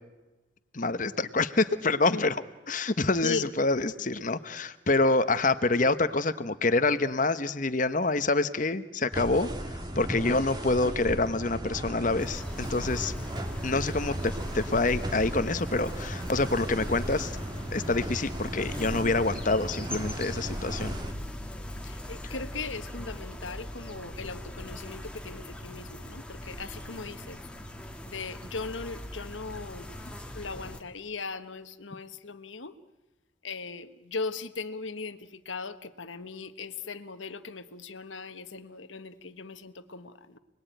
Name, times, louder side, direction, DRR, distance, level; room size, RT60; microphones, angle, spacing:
voice 1, 0.7-13.1 13.6-17.3 17.7-20.9, left 3 dB, 40° left, 12 dB, 1.1 m, -27 dB
sound 1, 9.1-21.1, right 1 dB, 20° right, 2.8 m, -36 dB
sound 2, 12.2-30.8, left 1 dB, 5° left, 1.9 m, -41 dB
voice 2, 21.8-27.4 28.1-29.9 30.3-32.7 33.4-40.4, left 4 dB, 80° left, 11 dB, 1.3 m, -38 dB
29.0 x 21.0 x 9.3 m, 1.1 s
head